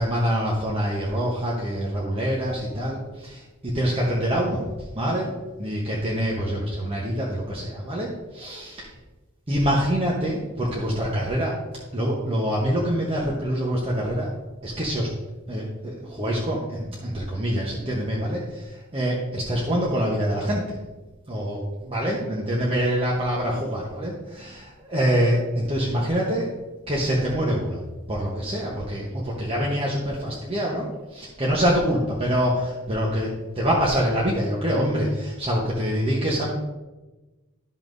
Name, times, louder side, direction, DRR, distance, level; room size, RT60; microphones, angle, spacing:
voice 1, 0.0-3.4 3.7-4.6 4.9-5.3 5.6-8.1 8.3-8.9 9.5-11.6 11.9-14.3 14.6-15.1 15.5-20.6 21.3-21.6 21.9-26.5 26.9-27.8 28.1-30.8 31.1-33.3 33.6-36.5, equal, 25° right, -4 dB, 1.1 m, -25 dB
12.5 x 5.6 x 2.7 m, 1.1 s
head